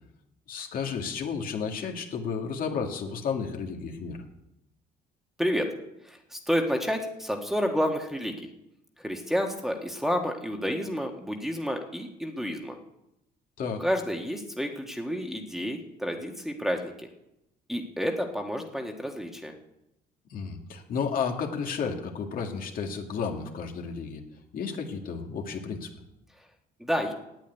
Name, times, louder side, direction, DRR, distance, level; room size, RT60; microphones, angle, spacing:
voice 1, 0.5-4.2 13.6-13.9 20.3-24.2 24.5-25.9, left 6 dB, 55° left, 2 dB, 2.0 m, -32 dB
voice 2, 5.4-5.7 6.0-8.5 9.0-12.8 13.8-17.1 17.7-19.5 26.8-27.1, equal, ahead, 1 dB, 1.5 m, -30 dB
9.0 x 8.9 x 9.3 m, 0.86 s
cardioid pair, 110°, 17 cm